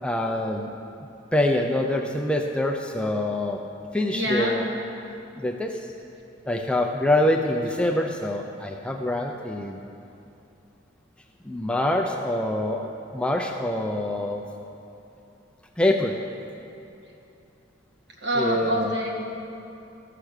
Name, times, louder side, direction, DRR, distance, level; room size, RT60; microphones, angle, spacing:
voice 1, 0.0-0.7 1.3-3.6 3.9-4.7 5.4-5.9 6.5-9.8 11.4-14.4 15.8-16.2 18.3-19.0, left 1 dB, 5° left, 2 dB, 0.4 m, -25 dB
voice 2, 4.1-4.6 7.8-7.9 18.2-19.1, equal, 65° right, -2 dB, 1.8 m, -25 dB
13.5 x 5.9 x 6.5 m, 2.8 s
head